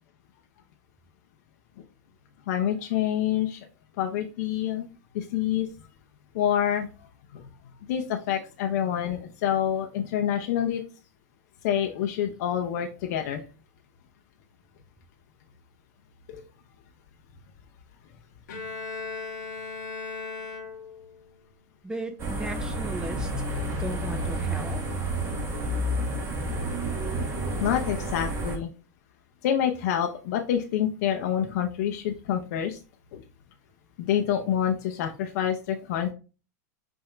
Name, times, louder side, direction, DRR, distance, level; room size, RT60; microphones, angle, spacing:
voice 1, 2.5-3.6 4.0-4.9 5.1-5.7 6.3-6.9 7.3-7.4 7.9-10.8 11.6-13.4 16.3-16.4 27.6-28.7 29.4-32.8 33.1-33.2 34.0-36.1, left 10 dB, 65° left, 0.7 m, -27 dB
Bowed string instrument, 18.5-21.2, left 4 dB, 85° left, 1.2 m, -37 dB
voice 2, 21.8-23.3 23.8-24.8, right 2 dB, 10° right, 0.6 m, -36 dB
sound 1, 22.2-28.6, right 1 dB, 25° right, 1.4 m, -30 dB
5.7 x 2.7 x 3.1 m
supercardioid pair, 120°, 10 cm